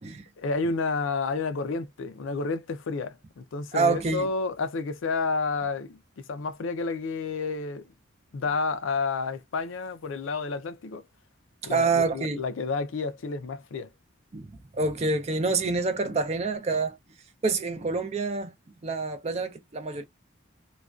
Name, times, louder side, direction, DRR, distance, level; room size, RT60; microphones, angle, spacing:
voice 1, 0.4-7.8 8.3-11.0 11.6-13.9, left 4 dB, 70° left, 0.4 m, -30 dB
voice 2, 3.7-4.3 11.6-12.4 14.3-17.0 17.4-18.5 18.8-20.0, right 3 dB, 30° right, 0.4 m, -27 dB
2.3 x 2.2 x 2.3 m
head